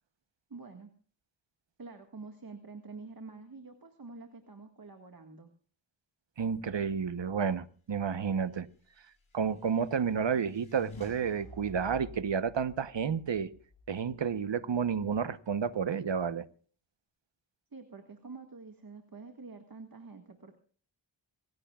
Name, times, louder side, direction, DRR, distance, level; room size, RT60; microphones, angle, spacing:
voice 1, 0.5-0.9 1.8-5.5 17.7-20.6, right 4 dB, 45° right, 1.9 m, -47 dB
voice 2, 6.4-8.7 9.3-13.5 13.9-16.5, right 6 dB, 65° right, 1.1 m, -31 dB
sound 1, 8.8-14.5, left 3 dB, 90° left, 6.9 m, -52 dB
26.0 x 16.0 x 2.4 m
cardioid pair, 50°, 47 cm